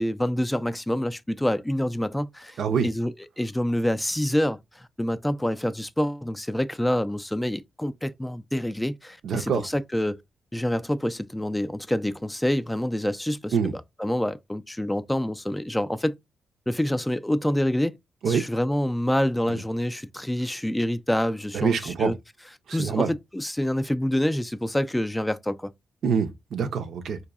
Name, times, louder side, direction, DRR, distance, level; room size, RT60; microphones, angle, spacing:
voice 1, 0.0-10.2 10.5-16.1 16.7-18.0 18.3-22.2 22.7-25.7, left 1 dB, 10° left, 0.3 m, -27 dB
voice 2, 2.6-2.9 9.2-9.6 13.5-13.7 18.2-18.4 21.5-22.1 22.7-23.1 26.0-27.2, right 6 dB, 70° right, 0.5 m, -25 dB
3.8 x 2.6 x 2.3 m
supercardioid pair, 50°, 0 cm